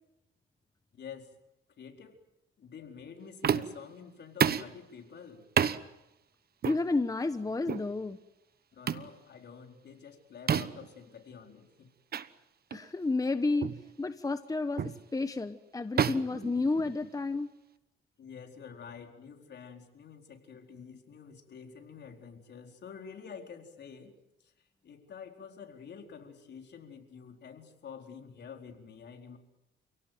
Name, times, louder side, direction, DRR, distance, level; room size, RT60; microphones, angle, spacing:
voice 1, 0.9-1.3 1.8-2.2 2.6-5.5 8.7-11.9 18.2-24.1 24.4-24.5 24.8-29.4, left 6 dB, 60° left, 3 dB, 4.4 m, -48 dB
sound 1, 3.4-3.9 4.4-4.7 5.6-5.8 6.6-6.8 7.7-7.9 8.9-9.1 10.5-10.9 12.1-12.3 12.7-12.9 13.6-13.8 14.8-15.0 16.0-17.2, right 8 dB, 50° right, 1.2 m, -29 dB
voice 2, 6.6-8.2 12.7-13.7 14.0-17.5, left 3 dB, 15° left, 10 dB, 1.1 m, -31 dB
29.5 x 17.5 x 9.4 m, 0.94 s
cardioid pair, 90°, 20 cm